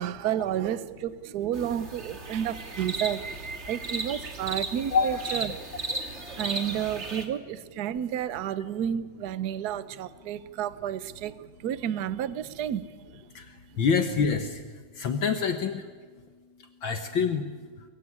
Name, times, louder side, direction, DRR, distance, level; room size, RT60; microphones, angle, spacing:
voice 1, 0.0-5.6 6.4-11.3 11.6-12.8, right 10 dB, 55° right, 15 dB, 1.3 m, -31 dB
sound 1, 1.5-7.3, right 3 dB, 30° right, 2.5 m, -35 dB
voice 2, 13.8-14.5 15.0-15.8 16.8-17.4, left 6 dB, 65° left, 7 dB, 2.0 m, -25 dB
24.0 x 22.0 x 9.7 m, 1.5 s
omnidirectional pair, 2.4 m